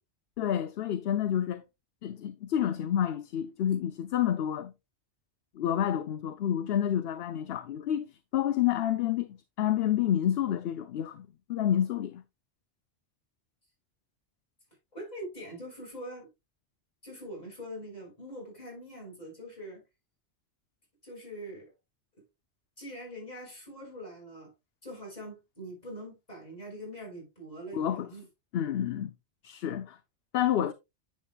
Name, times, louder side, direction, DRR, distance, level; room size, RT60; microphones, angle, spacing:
voice 1, 0.4-1.6 2.0-4.7 5.6-12.2 27.7-28.1 28.5-29.1 29.4-30.0 30.3-30.7, left 10 dB, 65° left, 0.8 m, -29 dB
voice 2, 14.9-16.3 17.0-19.8 21.0-21.7 22.8-24.5 24.8-28.3, equal, 35° left, 5.7 m, -43 dB
10.0 x 7.5 x 2.3 m
omnidirectional pair, 1.2 m